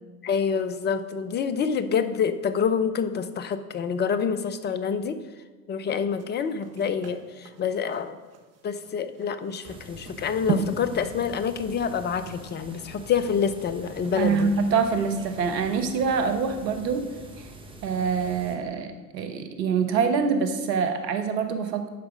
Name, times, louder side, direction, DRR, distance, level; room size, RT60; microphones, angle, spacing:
voice 1, 0.2-5.2 5.7-8.2 8.6-14.5, left 6 dB, 20° left, 12 dB, 0.6 m, -27 dB
sound 1, 6.1-14.7 15.1-15.2, right 4 dB, 30° right, 1.1 m, -36 dB
sound 2, 9.6-18.6, right 2 dB, 10° right, 1.3 m, -45 dB
voice 2, 14.2-17.5 17.8-21.9, right 5 dB, 80° right, 7 dB, 1.2 m, -25 dB
10.5 x 4.9 x 6.2 m, 1.3 s
hypercardioid pair, 85°, 49 cm